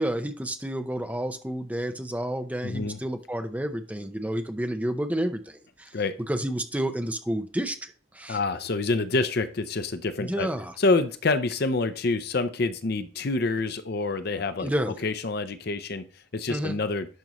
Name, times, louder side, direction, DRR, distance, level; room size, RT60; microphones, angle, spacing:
voice 1, 0.0-6.0 6.3-8.4 10.2-10.7 14.6-15.0 16.5-16.7, right 1 dB, 5° right, 6 dB, 0.6 m, -30 dB
voice 2, 2.6-3.0 5.9-6.2 8.3-10.5 10.8-14.7 15.0-16.1 16.3-17.1, left 3 dB, 50° left, 11 dB, 0.6 m, -27 dB
11.0 x 5.3 x 3.0 m, 0.40 s
head